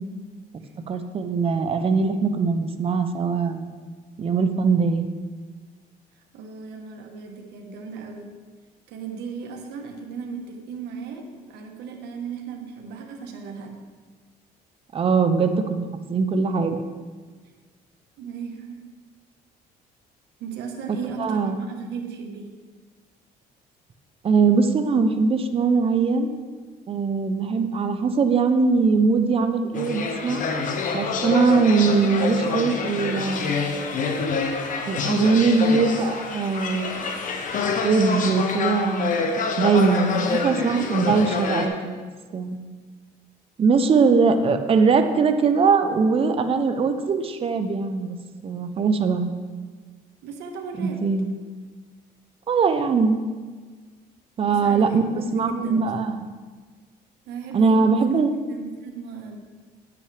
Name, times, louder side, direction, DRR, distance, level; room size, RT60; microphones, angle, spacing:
voice 1, 0.9-3.7 4.2-5.1 14.9-16.8 21.2-21.6 24.2-26.4 26.9-30.4 30.9-33.7 34.9-37.1 37.8-39.2 39.6-42.6 43.6-48.2 48.4-49.4 50.8-51.3 52.5-53.2 54.4-56.2 57.5-58.3, right 4 dB, 35° right, 7 dB, 0.7 m, -21 dB
voice 2, 6.3-8.3 8.9-13.8 18.2-18.8 20.4-22.5 40.1-40.9 50.2-51.1 54.4-55.9 57.3-58.2 58.5-59.4, right 6 dB, 80° right, 2 dB, 1.3 m, -36 dB
sound 1, 29.7-41.7, left 4 dB, 50° left, 1.0 m, -27 dB
10.0 x 8.5 x 3.4 m, 1.4 s
cardioid pair, 110°, 17 cm